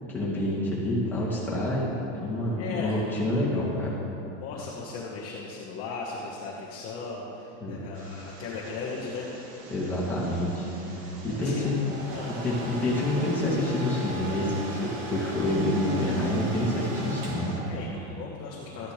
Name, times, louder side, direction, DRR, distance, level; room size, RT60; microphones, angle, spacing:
voice 1, 0.1-1.9 2.2-3.9 7.6-7.8 9.7-10.7 11.2-11.8 12.4-17.7, left 1 dB, 5° left, -9 dB, 2.5 m, -27 dB
voice 2, 2.6-3.0 4.4-9.3 11.4-11.7 12.1-12.4 17.7-18.9, left 4 dB, 40° left, -4 dB, 1.3 m, -37 dB
sound 1, 8.0-17.6, right 1 dB, 50° right, 1.9 m, -41 dB
Domestic sounds home sounds, 11.4-18.1, right 2 dB, 80° right, 2.8 m, -39 dB
13.5 x 11.0 x 3.3 m, 3.0 s
supercardioid pair, 160°, 36 cm